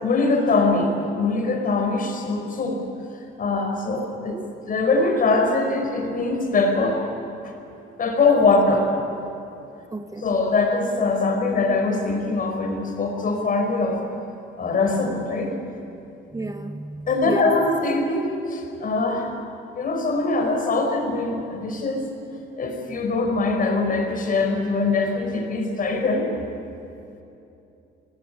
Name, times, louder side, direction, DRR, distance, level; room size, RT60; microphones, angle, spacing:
voice 1, 0.0-2.8 3.4-4.4 4.7-7.0 7.4-7.5 8.0-8.9 10.2-14.0 14.6-15.5 17.1-19.3 19.7-22.0 22.6-26.3, left 3 dB, 45° left, 4 dB, 5.2 m, -22 dB
voice 2, 4.0-4.5 8.4-8.5 9.9-10.2 16.3-17.4, right 2 dB, 15° right, 8 dB, 1.0 m, -33 dB
27.0 x 19.0 x 9.6 m, 2.8 s
cardioid pair, 115°, 20 cm